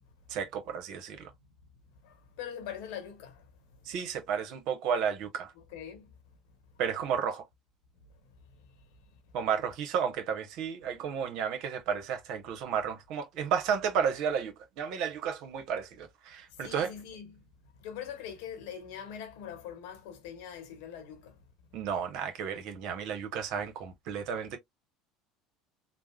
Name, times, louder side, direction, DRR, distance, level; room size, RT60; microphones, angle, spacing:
voice 1, 0.3-1.3 3.9-5.5 6.8-7.4 9.3-16.9 21.7-24.6, right 7 dB, 65° right, 0.9 m, -32 dB
voice 2, 2.0-3.5 3.9-4.1 5.7-6.1 16.6-17.4 17.8-21.4, left 8 dB, 75° left, 0.9 m, -42 dB
3.4 x 2.0 x 2.2 m
supercardioid pair, 85°, 0 cm